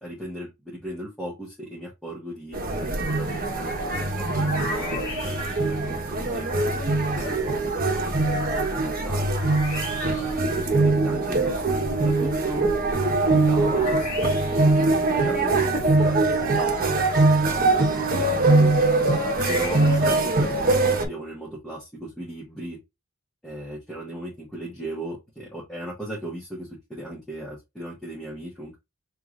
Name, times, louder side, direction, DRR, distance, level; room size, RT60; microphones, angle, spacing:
voice 1, 0.0-8.3 8.6-9.6 10.4-18.7 19.5-22.8 23.4-28.8, right 1 dB, 5° left, -3 dB, 1.2 m, -37 dB
sound 1, 2.5-21.1, right 2 dB, 45° right, 1.1 m, -22 dB
sound 2, 4.1-5.8 9.3-10.5 13.6-14.8 18.9-20.3, left 3 dB, 35° left, 2.1 m, -36 dB
5.8 x 3.1 x 2.4 m, 0.22 s
head